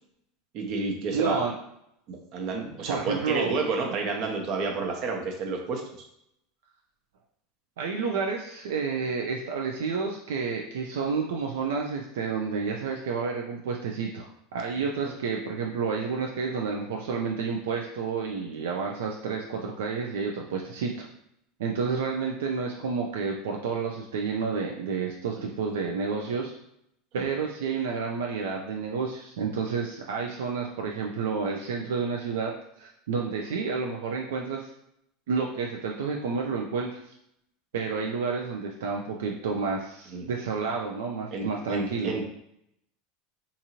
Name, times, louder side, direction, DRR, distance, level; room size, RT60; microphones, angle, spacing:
voice 1, 0.5-1.4 2.1-5.8 27.1-27.3 40.1-40.3 41.3-42.2, right 4 dB, 55° right, 1 dB, 0.7 m, -30 dB
voice 2, 1.1-1.6 2.9-3.6 7.8-21.0 21.6-26.5 27.1-34.7 35.3-37.1 37.7-42.2, right 5 dB, 85° right, 0 dB, 0.3 m, -30 dB
2.6 x 2.5 x 2.9 m, 0.76 s
supercardioid pair, 105°, 0 cm